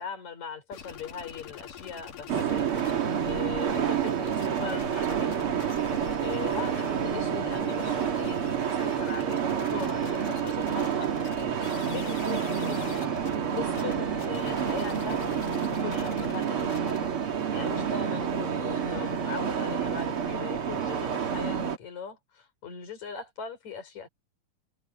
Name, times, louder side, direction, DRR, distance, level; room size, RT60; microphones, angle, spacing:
voice 1, 0.0-5.3 5.8-15.2 15.5-16.9 17.5-24.1, left 6 dB, 60° left, 6.9 m, -40 dB
sound 1, 0.7-2.9 3.2-7.0 7.4-18.9, left 8 dB, 80° left, 3.7 m, -46 dB
sound 2, 2.3-21.8, right 8 dB, 45° right, 2.6 m, -29 dB
omnidirectional pair, 3.7 m